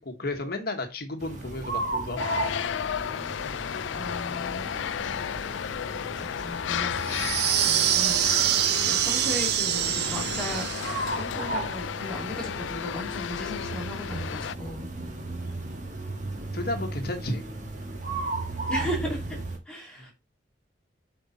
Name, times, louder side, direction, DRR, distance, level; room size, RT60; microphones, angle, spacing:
voice 1, 0.0-2.5 16.5-17.5 20.0-20.1, left 2 dB, 55° left, 5 dB, 1.2 m, -33 dB
sound 1, 1.2-19.6, right 2 dB, 40° right, 1.6 m, -36 dB
sound 2, 2.2-14.6, left 8 dB, 75° left, 0.4 m, -33 dB
voice 2, 3.9-5.2 6.1-7.3 7.6-8.4 8.8-14.9 18.7-19.4 19.6-20.1, left 1 dB, 5° left, -3 dB, 2.8 m, -36 dB
sound 3, 7.0-11.1, right 11 dB, 55° right, 0.6 m, -25 dB
8.0 x 4.7 x 4.1 m, 0.26 s
head